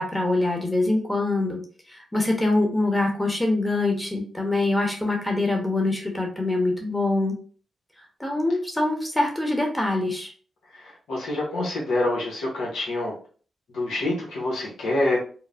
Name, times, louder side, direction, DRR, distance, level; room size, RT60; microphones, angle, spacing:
voice 1, 0.0-1.6 1.9-7.3 8.2-10.3, left 2 dB, 15° left, 1 dB, 1.0 m, -24 dB
voice 2, 10.7-13.1 13.7-15.2, left 2 dB, 80° left, -3 dB, 0.9 m, -26 dB
3.0 x 2.1 x 2.5 m, 0.42 s
supercardioid pair, 50°, 0 cm